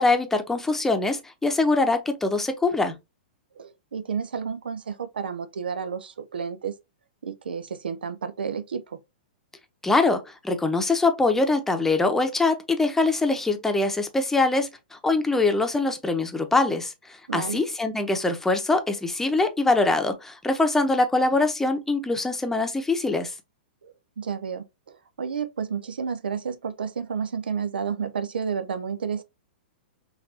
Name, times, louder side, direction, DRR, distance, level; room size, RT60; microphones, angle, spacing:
voice 1, 0.0-2.9 9.8-23.3, left 3 dB, 5° left, 0.8 m, -23 dB
voice 2, 3.6-6.7 7.2-9.0 17.3-17.6 23.8-29.2, right 6 dB, 85° right, 0.6 m, -31 dB
5.8 x 2.6 x 2.8 m
hypercardioid pair, 120°, 5 cm